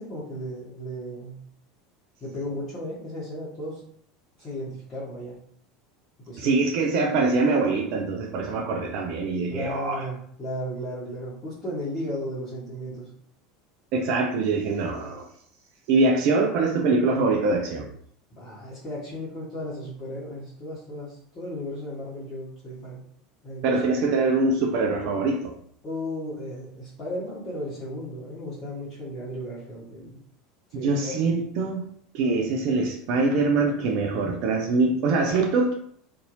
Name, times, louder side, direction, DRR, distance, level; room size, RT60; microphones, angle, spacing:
voice 1, 0.0-1.4 2.2-3.8 4.4-5.4 6.3-6.5 9.5-13.1 18.3-23.0 23.4-23.9 25.8-30.2 30.7-31.4, equal, 35° left, -10 dB, 1.1 m, -35 dB
voice 2, 6.4-10.1 13.9-15.3 15.9-17.9 23.6-25.5 30.7-31.9 32.1-35.7, right 3 dB, 55° right, 2 dB, 0.4 m, -23 dB
2.7 x 2.7 x 2.5 m, 0.63 s
figure-of-eight pair, 75°, 0 cm